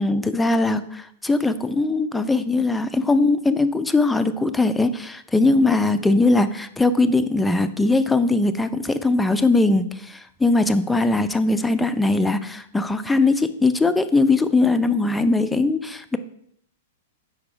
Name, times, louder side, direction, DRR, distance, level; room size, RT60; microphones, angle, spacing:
voice 1, 0.0-16.2, left 3 dB, 5° left, 11 dB, 0.4 m, -20 dB
4.7 x 4.6 x 4.9 m, 0.69 s
figure-of-eight pair, 100°, 0 cm